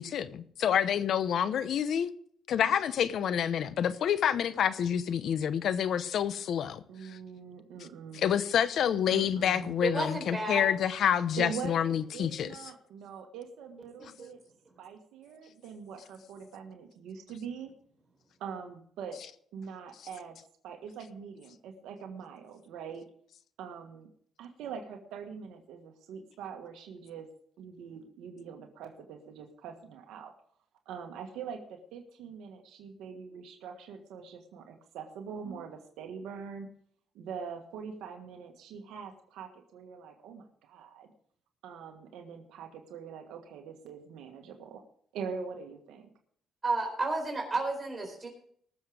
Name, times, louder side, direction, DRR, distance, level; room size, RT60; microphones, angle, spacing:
voice 1, 0.0-2.1 2.5-7.2 8.1-12.5, left 9 dB, 70° left, 0.9 m, -28 dB
voice 2, 6.9-8.3 9.1-9.8 11.4-14.4 14.8-17.7 18.4-19.2 19.5-20.4 20.6-23.0 23.6-24.1 24.4-27.3 27.6-30.3 30.8-36.7 37.1-41.1 41.6-44.8 45.1-46.1, right 6 dB, 90° right, 1.5 m, -43 dB
voice 3, 9.8-10.7 14.2-14.3 46.6-48.3, right 2 dB, 30° right, 4.2 m, -31 dB
19.0 x 7.3 x 4.9 m
cardioid pair, 90°, 0 cm